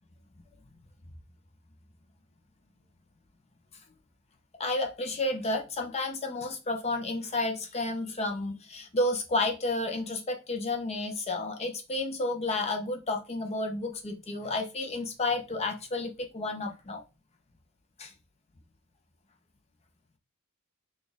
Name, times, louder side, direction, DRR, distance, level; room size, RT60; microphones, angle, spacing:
voice 1, 4.6-17.0 18.0-18.1, left 2 dB, 30° left, 0.6 m, -31 dB
4.1 x 2.4 x 3.4 m
head